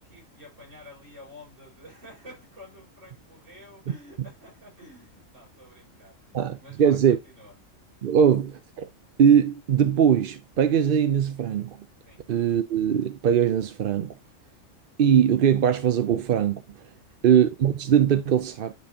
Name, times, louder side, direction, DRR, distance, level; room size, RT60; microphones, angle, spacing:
voice 1, 0.0-7.5 12.1-12.2 16.9-17.3, left 1 dB, 70° right, 5.8 m, -49 dB
voice 2, 6.3-7.2 8.0-8.9 9.2-11.8 12.3-14.1 15.0-16.6 17.2-18.7, right 8 dB, 55° right, 0.7 m, -21 dB
10.5 x 4.3 x 2.8 m
omnidirectional pair, 1.3 m